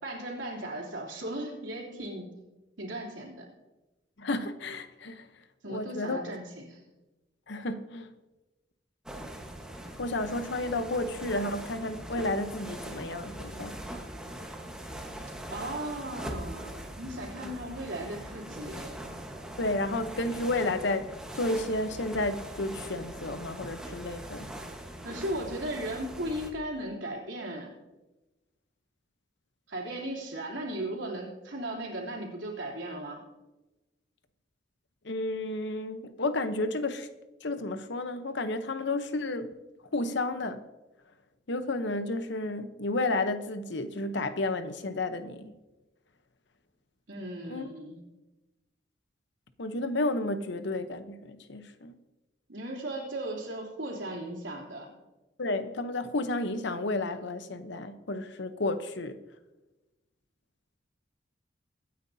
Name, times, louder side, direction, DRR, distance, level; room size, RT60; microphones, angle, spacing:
voice 1, 0.0-2.3 2.8-3.4 5.6-6.8 15.5-18.9 25.0-27.7 29.7-33.2 47.1-48.0 52.5-54.9, right 1 dB, 75° right, 3.3 m, -37 dB
voice 2, 4.2-5.3 5.7-6.4 7.5-8.1 10.0-13.8 17.4-17.5 19.6-24.5 35.0-37.1 37.4-39.5 39.9-40.6 41.5-45.5 47.5-47.6 49.6-51.9 55.4-59.2, left 2 dB, 65° left, 0.9 m, -32 dB
sound 1, 9.1-26.5, right 1 dB, 5° right, 1.3 m, -41 dB
23.5 x 9.5 x 2.8 m
head